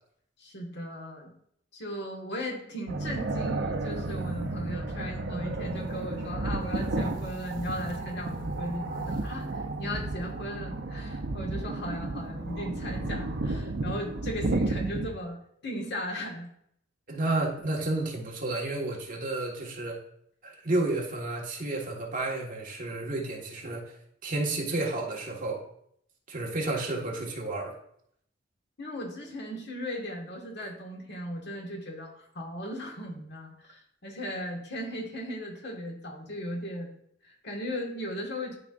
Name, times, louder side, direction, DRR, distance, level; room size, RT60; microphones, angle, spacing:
voice 1, 0.4-1.3 1.7-16.5 28.8-36.9 37.2-38.6, equal, 65° left, 0 dB, 1.8 m, -37 dB
sound 1, 2.9-15.1, right 2 dB, 75° right, 0.7 m, -32 dB
voice 2, 17.1-20.0 20.4-24.0 24.2-25.6 26.3-27.7, right 2 dB, 45° right, -2 dB, 1.7 m, -31 dB
12.5 x 4.8 x 2.6 m, 0.70 s
head